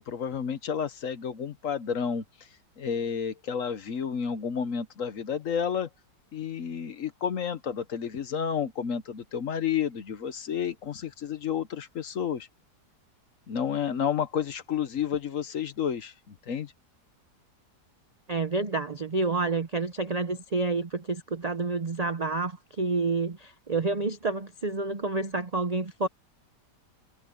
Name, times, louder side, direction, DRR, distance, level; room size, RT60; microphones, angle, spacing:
voice 1, 0.0-2.2 2.8-5.9 6.3-12.5 13.5-16.7, left 7 dB, 55° left, 1.2 m, -31 dB
voice 2, 18.3-26.1, right 3 dB, 55° right, 0.4 m, -29 dB
omnidirectional pair, 1.8 m